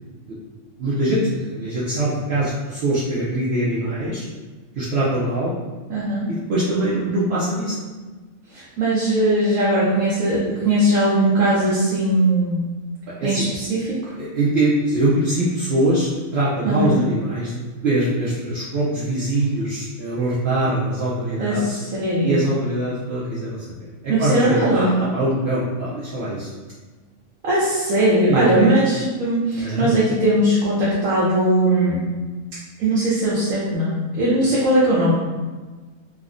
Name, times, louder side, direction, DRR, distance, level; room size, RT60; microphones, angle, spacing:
voice 1, 0.8-4.3 4.8-5.5 6.3-7.8 13.2-13.4 14.1-21.6 22.2-26.5 28.3-28.7 29.6-29.9, right 1 dB, 60° right, -8 dB, 0.7 m, -23 dB
voice 2, 5.9-6.3 8.5-12.6 13.2-14.1 16.6-17.0 21.4-22.4 24.1-24.9 27.4-32.0 32.8-35.1, right 1 dB, 80° right, -7 dB, 1.0 m, -19 dB
3.4 x 2.1 x 2.4 m, 1.3 s
omnidirectional pair, 1.4 m